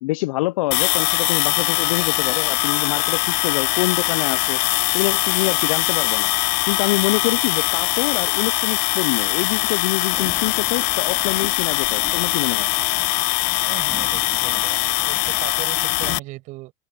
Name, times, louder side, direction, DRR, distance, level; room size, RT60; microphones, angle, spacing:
voice 1, 0.0-4.6 4.9-6.3 6.7-12.7, left 19 dB, 85° left, 0.4 m, -25 dB
sound 1, 0.7-16.2, left 22 dB, 60° left, 1.0 m, -22 dB
Thunderstorm / Rain, 10.1-15.6, left 2 dB, 5° left, 3.6 m, -43 dB
voice 2, 13.7-16.7, right 20 dB, 50° right, 5.9 m, -37 dB
open air
supercardioid pair, 150°, 17 cm